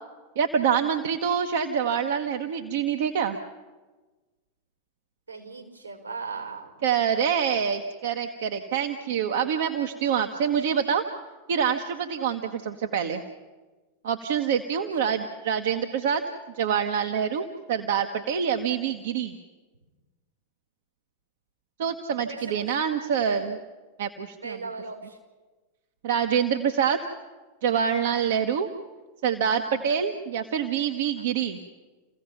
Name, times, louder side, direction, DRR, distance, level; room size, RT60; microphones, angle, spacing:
voice 1, 0.4-3.4 6.8-11.0 11.5-13.2 14.0-16.2 16.6-19.3 21.8-23.6 24.0-24.6 26.0-27.0 27.6-28.7 29.2-31.6, right 7 dB, 55° right, 6 dB, 1.2 m, -26 dB
voice 2, 5.3-6.7 14.8-15.2 22.3-22.9 23.2-23.5 24.4-25.2 26.2-26.3 28.0-28.3 29.7-30.0 31.2-31.3, right 4 dB, 85° right, 3 dB, 5.4 m, -39 dB
29.5 x 16.5 x 5.9 m, 1.3 s
figure-of-eight pair, 90°, 0 cm